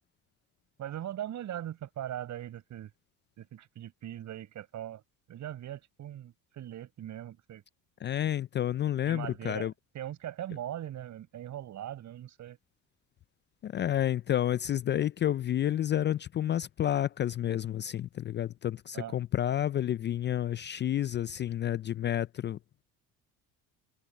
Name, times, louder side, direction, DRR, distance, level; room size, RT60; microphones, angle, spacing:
voice 1, 0.8-2.9 3.4-5.0 5.3-7.6 9.1-9.7 9.9-12.6 18.9-19.1, right 11 dB, 55° right, 6.8 m, -40 dB
voice 2, 8.0-9.7 13.6-22.6, left 11 dB, 35° left, 0.4 m, -30 dB
supercardioid pair, 100°, 34 cm